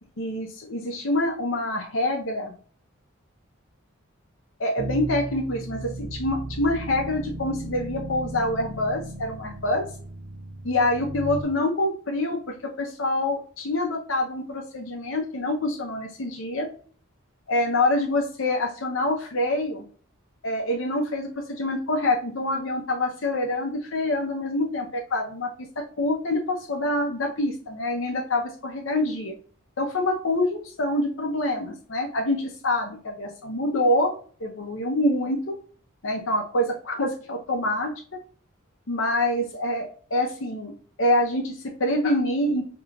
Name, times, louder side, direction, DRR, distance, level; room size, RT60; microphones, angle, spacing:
voice 1, 0.2-2.5 4.6-9.9 10.6-16.7 17.5-19.8 20.4-25.5 25.8-29.3 29.8-34.1 34.4-35.6 36.0-37.9 38.9-40.7 41.0-42.7, left 1 dB, 65° left, 1 dB, 0.7 m, -26 dB
sound 1, 4.8-11.4, right 2 dB, 45° right, 0.5 m, -35 dB
4.8 x 2.9 x 2.4 m, 0.43 s
head